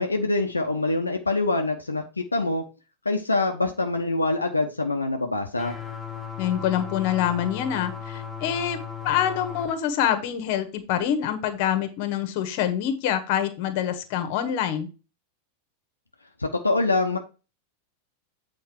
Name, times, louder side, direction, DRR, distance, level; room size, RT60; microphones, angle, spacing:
voice 1, 0.0-2.6 3.0-5.8 16.4-17.2, left 2 dB, 80° left, 3 dB, 0.8 m, -25 dB
sound 1, 5.6-9.7, left 7 dB, 5° left, 1.6 m, -36 dB
voice 2, 6.4-8.8 9.0-14.9, left 10 dB, 45° left, 9 dB, 1.4 m, -26 dB
8.4 x 4.4 x 4.5 m, 0.32 s
figure-of-eight pair, 90°, 0 cm